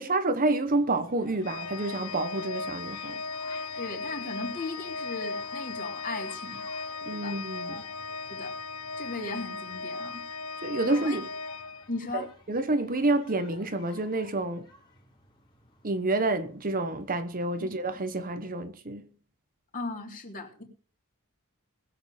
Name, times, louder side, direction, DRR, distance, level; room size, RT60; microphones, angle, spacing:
voice 1, 0.0-3.2 7.0-7.8 10.6-11.2 12.1-14.7 15.8-19.0, right 2 dB, 40° right, 1.1 m, -28 dB
sound 1, 0.6-18.6, left 3 dB, 20° left, 3.2 m, -55 dB
Organ, 1.4-12.3, left 4 dB, 80° left, 1.0 m, -37 dB
voice 2, 3.8-6.6 7.1-7.4 8.3-8.5 9.0-10.2 10.9-11.2 11.9-12.3 17.6-17.7 19.7-20.6, left 3 dB, 40° left, 3.6 m, -37 dB
20.5 x 8.0 x 5.0 m
head